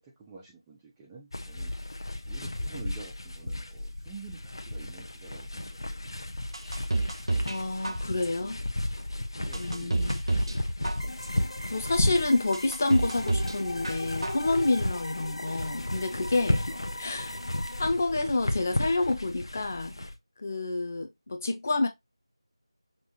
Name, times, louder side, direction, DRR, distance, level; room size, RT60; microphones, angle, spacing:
voice 1, 0.0-1.7 2.3-6.3 9.4-10.2 16.7-17.1 17.9-18.0, right 4 dB, 5° right, 0.3 m, -48 dB
sound 1, 1.3-20.1, left 1 dB, 60° left, 1.1 m, -34 dB
sound 2, 6.5-7.6 7.8-8.5 9.0-9.1 9.5-10.6 10.8-11.5 12.0-12.1 12.5-13.6 13.8-14.5 14.8-14.9, right 2 dB, 65° right, 0.7 m, -29 dB
voice 2, 7.4-8.6 9.5-10.2 11.7-17.4 17.8-19.9 20.4-21.9, left 2 dB, 30° left, 0.8 m, -28 dB
sound 3, 11.0-17.8, left 1 dB, 80° left, 1.4 m, -40 dB
6.2 x 2.5 x 3.0 m
figure-of-eight pair, 170°, 3 cm